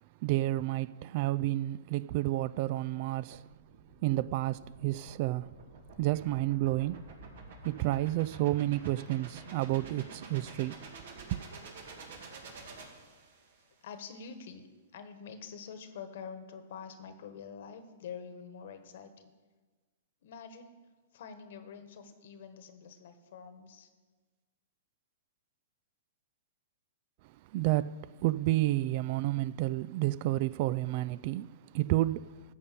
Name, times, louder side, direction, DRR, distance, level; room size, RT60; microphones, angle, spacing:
voice 1, 0.2-3.4 4.0-5.5 6.0-7.0 7.6-10.8 11.3-11.4 27.5-32.3, right 16 dB, 50° right, 0.3 m, -30 dB
sound 1, 3.3-13.6, right 3 dB, 70° right, 2.2 m, -49 dB
voice 2, 13.8-14.7 14.9-19.1 20.2-20.8 21.1-23.9, left 6 dB, 65° left, 1.4 m, -46 dB
13.5 x 5.4 x 8.4 m
hypercardioid pair, 125°, 0 cm